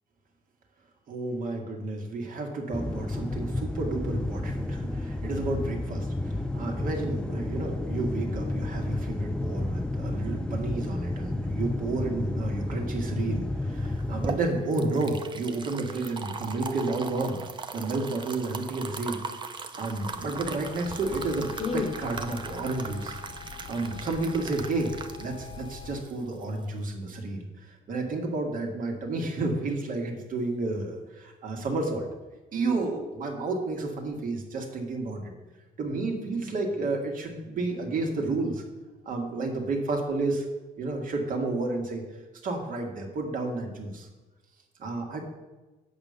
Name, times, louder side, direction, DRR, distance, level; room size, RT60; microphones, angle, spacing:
voice 1, 1.1-17.4 17.7-19.2 19.7-23.2 23.7-32.1 32.5-35.3 35.8-38.7 39.1-40.5 40.8-42.0 42.4-44.1 44.8-45.3, right 2 dB, 55° right, 2 dB, 1.8 m, -31 dB
sound 1, 2.7-14.4, left 2 dB, 5° left, 0.3 m, -31 dB
sound 2, 13.9-26.8, right 5 dB, 30° right, 0.7 m, -39 dB
sound 3, 19.9-26.0, left 5 dB, 30° left, 1.1 m, -40 dB
8.0 x 5.2 x 6.8 m, 1.2 s
cardioid pair, 110°, 17 cm